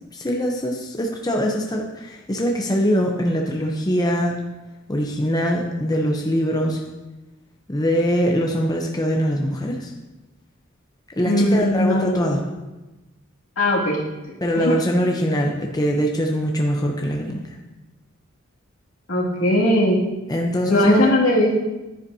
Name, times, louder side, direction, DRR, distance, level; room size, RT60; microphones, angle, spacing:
voice 1, 0.1-4.4 4.9-6.8 7.7-9.9 11.2-12.4 14.4-17.4 20.3-21.1, equal, 20° left, 0 dB, 0.7 m, -22 dB
voice 2, 11.2-12.4 13.6-14.0 14.5-14.7 19.1-20.0 20.7-21.5, left 1 dB, 75° left, -4 dB, 2.4 m, -19 dB
10.5 x 9.9 x 2.8 m, 1.1 s
head